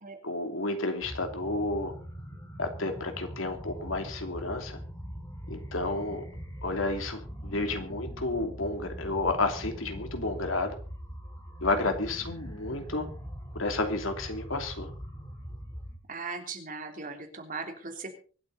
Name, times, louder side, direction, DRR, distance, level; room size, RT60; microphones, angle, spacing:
voice 1, 0.2-1.9 2.6-4.8 5.5-6.2 6.6-10.8 11.6-13.1 13.5-14.9, left 2 dB, 85° left, 5 dB, 2.9 m, -31 dB
sound 1, 1.0-16.0, equal, 15° left, 3.3 m, -42 dB
voice 2, 16.1-18.2, right 4 dB, 45° right, 4 dB, 3.2 m, -38 dB
24.5 x 8.6 x 4.1 m, 0.39 s
head